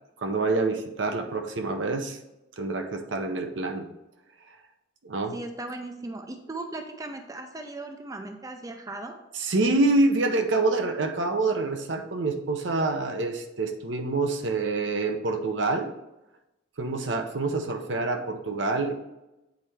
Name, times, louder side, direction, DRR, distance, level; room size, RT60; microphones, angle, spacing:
voice 1, 0.2-2.2 2.6-3.9 5.0-5.4 9.3-15.9 16.8-18.9, right 3 dB, 75° right, 5 dB, 0.8 m, -26 dB
voice 2, 5.3-9.2, right 2 dB, 20° right, 6 dB, 0.4 m, -37 dB
8.2 x 4.3 x 3.4 m, 0.94 s
head